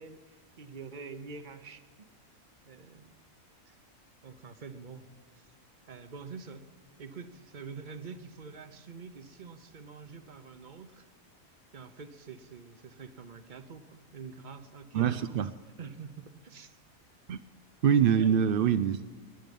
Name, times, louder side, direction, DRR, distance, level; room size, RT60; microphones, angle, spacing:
voice 1, 0.0-1.8 2.7-3.2 3.7-3.8 4.2-5.1 5.3-5.5 5.9-6.7 7.0-11.1 11.7-15.4 15.8-16.8 18.2-18.4, right 5 dB, 40° right, 0.9 m, -46 dB
voice 2, 14.9-15.5 17.3-17.4 17.8-19.2, right 8 dB, 65° right, 0.5 m, -25 dB
20.0 x 10.5 x 5.3 m
omnidirectional pair, 1.4 m